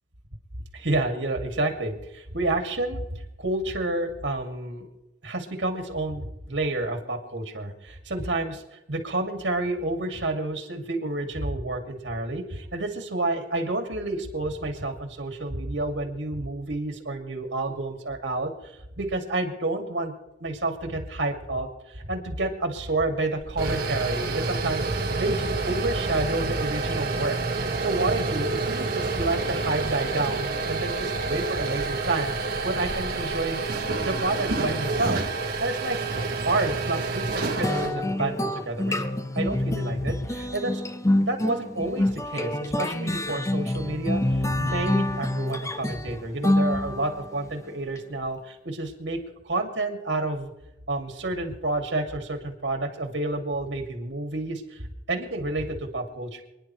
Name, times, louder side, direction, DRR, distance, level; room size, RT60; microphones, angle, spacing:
voice 1, 0.7-4.9 5.2-20.1 20.4-33.6 34.0-35.2 35.6-36.0 36.4-38.9 39.3-40.8 41.2-44.2 44.5-49.2 49.4-50.5 50.9-56.4, right 2 dB, 80° right, 4 dB, 2.3 m, -29 dB
sound 1, 23.4-37.9, right 3 dB, 55° right, 1.9 m, -28 dB
sound 2, 37.6-47.3, left 1 dB, 15° left, 0.6 m, -26 dB
28.5 x 10.5 x 3.2 m, 0.96 s
head